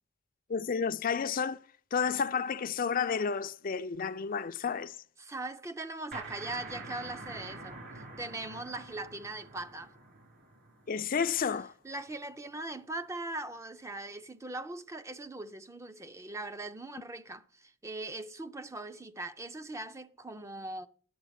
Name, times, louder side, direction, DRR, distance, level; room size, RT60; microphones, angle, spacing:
voice 1, 0.5-1.6 1.9-5.0 10.9-11.7, left 6 dB, 45° left, 0.5 m, -31 dB
voice 2, 5.2-9.9 11.8-20.9, right 2 dB, 15° right, 0.5 m, -40 dB
sound 1, 6.1-11.5, right 3 dB, 55° right, 3.0 m, -46 dB
10.0 x 7.8 x 5.7 m
head